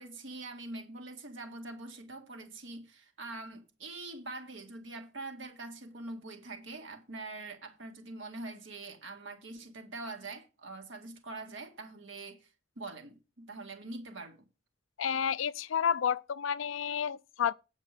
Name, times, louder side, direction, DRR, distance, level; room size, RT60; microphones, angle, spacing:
voice 1, 0.0-14.5, right 2 dB, 75° right, 1.9 m, -44 dB
voice 2, 15.0-17.5, left 8 dB, 80° left, 0.4 m, -30 dB
8.7 x 5.3 x 6.6 m
head